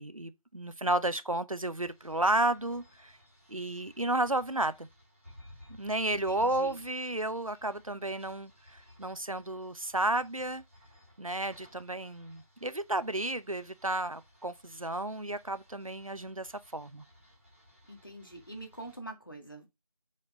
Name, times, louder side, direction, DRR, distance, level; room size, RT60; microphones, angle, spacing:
voice 1, 0.0-3.2 3.5-4.9 5.8-10.6 11.2-17.0, right 2 dB, 65° right, 0.8 m, -32 dB
sound 1, 1.8-19.0, left 1 dB, 20° right, 2.5 m, -58 dB
voice 2, 6.1-6.8 17.9-19.7, right 1 dB, 35° left, 1.9 m, -45 dB
7.4 x 4.5 x 5.2 m
figure-of-eight pair, 175°, 19 cm